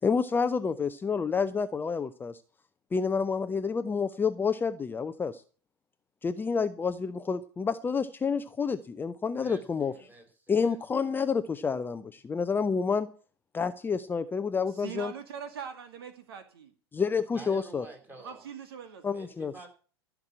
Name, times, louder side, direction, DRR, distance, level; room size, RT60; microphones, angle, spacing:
voice 1, 0.0-2.4 2.9-5.4 6.2-9.9 10.5-13.1 13.5-15.1 16.9-17.8 19.0-19.5, left 5 dB, 15° left, 0.7 m, -29 dB
voice 2, 9.3-10.8 17.3-18.4 19.1-19.7, right 2 dB, 15° right, 4.7 m, -48 dB
voice 3, 14.8-16.7 18.2-19.1, right 7 dB, 65° right, 2.2 m, -42 dB
14.5 x 6.1 x 8.7 m
figure-of-eight pair, 95°, 13 cm